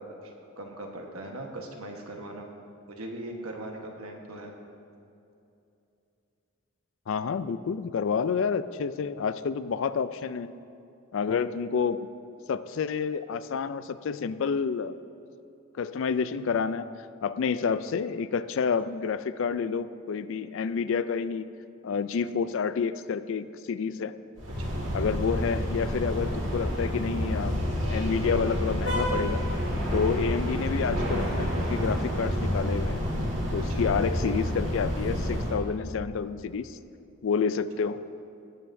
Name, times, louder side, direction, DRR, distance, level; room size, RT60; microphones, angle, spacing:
voice 1, 0.0-2.5 3.0-4.5 24.6-24.8 33.7-33.9, right 1 dB, 80° right, 2 dB, 1.3 m, -40 dB
voice 2, 7.1-10.5 11.1-12.1 12.5-15.0 15.7-16.8 17.2-21.5 21.8-24.2 24.9-29.4 29.9-33.0 33.5-36.8 37.2-38.0, left 6 dB, 65° left, 14 dB, 0.3 m, -29 dB
sound 1, 24.4-35.6, equal, 60° right, 2.1 m, -29 dB
18.5 x 7.7 x 2.6 m, 2.7 s
head